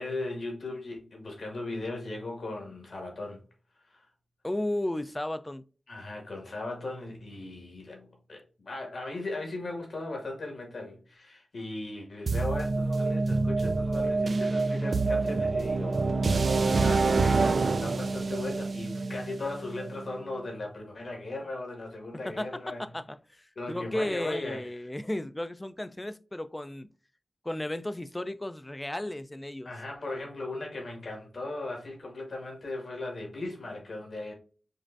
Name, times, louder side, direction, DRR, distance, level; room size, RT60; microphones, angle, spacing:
voice 1, 0.0-3.4 3.8-4.1 5.9-22.8 23.6-24.8 29.6-34.3, left 2 dB, 65° left, 1.8 m, -38 dB
voice 2, 4.4-5.6 22.4-26.9 27.4-29.7, left 1 dB, 20° left, 0.4 m, -34 dB
sound 1, 12.3-20.1, right 3 dB, 65° right, 0.3 m, -27 dB
5.2 x 2.4 x 2.5 m
cardioid pair, 55°, 0 cm